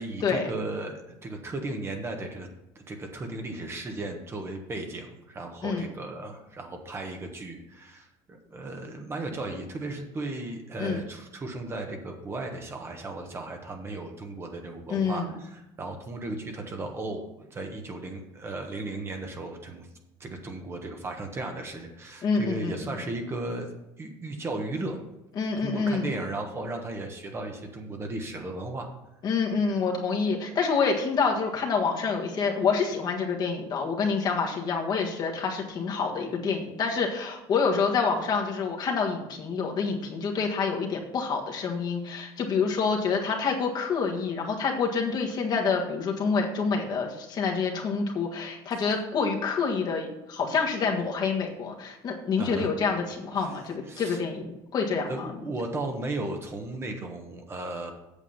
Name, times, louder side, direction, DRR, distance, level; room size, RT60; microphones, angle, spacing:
voice 1, 0.0-2.5 2.7-19.9 20.2-23.7 24.0-25.0 25.6-28.9 52.4-52.7 53.4-53.6 53.9-54.2 55.1-57.9, right 2 dB, 25° right, 3 dB, 1.3 m, -35 dB
voice 2, 14.9-15.3 22.2-22.9 25.4-26.1 29.2-55.3, left 5 dB, 40° left, 1 dB, 1.6 m, -27 dB
8.4 x 7.1 x 5.7 m, 0.93 s
cardioid pair, 140°, 11 cm